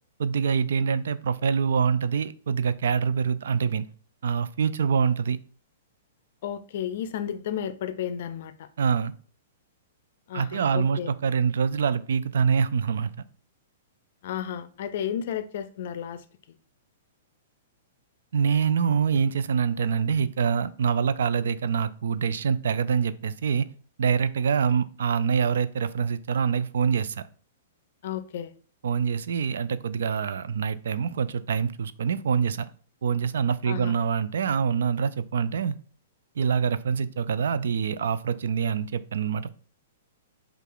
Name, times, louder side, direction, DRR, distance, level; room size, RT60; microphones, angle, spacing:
voice 1, 0.2-3.9 4.2-5.4 8.8-9.1 10.3-13.1 18.3-23.7 24.0-27.2 28.8-32.7 33.0-35.8 36.4-39.5, right 6 dB, 65° right, 0.3 m, -25 dB
voice 2, 6.4-8.7 10.3-11.1 14.2-16.2 28.0-28.5 33.6-34.0, left 9 dB, 55° left, 0.4 m, -33 dB
5.3 x 2.4 x 3.9 m
figure-of-eight pair, 110°, 0 cm